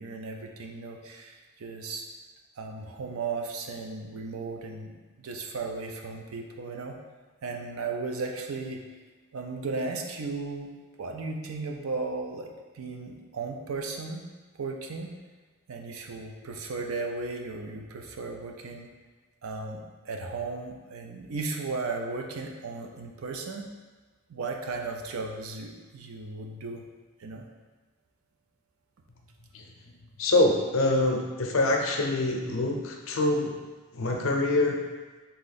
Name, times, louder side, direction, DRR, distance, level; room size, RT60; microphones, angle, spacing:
voice 1, 0.0-2.0 2.6-7.0 7.4-8.8 9.3-10.7 11.0-14.2 14.6-15.1 15.7-18.9 19.4-23.7 24.3-26.8 27.2-27.4, right 3 dB, 80° right, 2 dB, 0.5 m, -35 dB
voice 2, 30.2-33.5 33.9-34.8, left 2 dB, 70° left, 2 dB, 0.6 m, -25 dB
3.7 x 2.9 x 4.1 m, 1.3 s
head